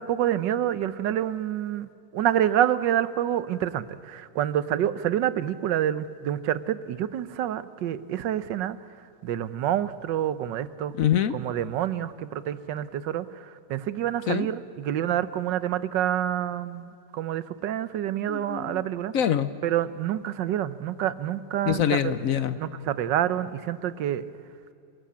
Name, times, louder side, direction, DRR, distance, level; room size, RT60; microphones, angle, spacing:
voice 1, 0.0-10.9 11.3-19.1 19.6-22.1 22.6-24.2, right 11 dB, 90° right, 15 dB, 1.5 m, -28 dB
voice 2, 10.9-11.3 14.3-14.5 18.3-18.8 19.1-19.5 21.7-22.6, left 9 dB, 60° left, 14 dB, 1.0 m, -24 dB
28.0 x 17.5 x 8.6 m, 2.6 s
omnidirectional pair, 1.9 m